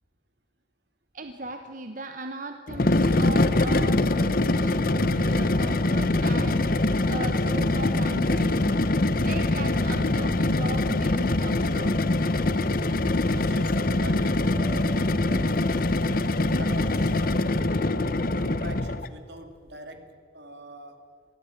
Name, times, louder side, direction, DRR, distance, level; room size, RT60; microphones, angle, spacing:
voice 1, 1.1-8.8 9.1-12.0, right 2 dB, 45° right, 7 dB, 1.0 m, -38 dB
sound 1, 2.7-19.1, left 2 dB, 50° left, 0.9 m, -23 dB
voice 2, 13.3-15.9 16.6-17.5 18.2-21.0, right 2 dB, 70° right, 7 dB, 2.5 m, -43 dB
23.5 x 16.0 x 9.1 m, 2.2 s
head